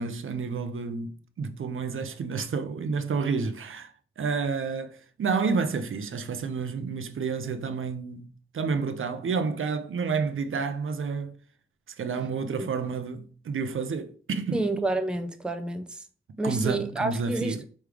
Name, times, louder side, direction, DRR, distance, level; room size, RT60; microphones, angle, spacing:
voice 1, 0.0-8.3 8.5-11.4 12.0-14.6 16.4-17.6, right 5 dB, 80° right, 0.6 m, -30 dB
voice 2, 14.5-16.0 16.4-17.6, right 2 dB, 5° right, 0.4 m, -29 dB
3.4 x 3.2 x 4.7 m
wide cardioid pair, 110°, 21 cm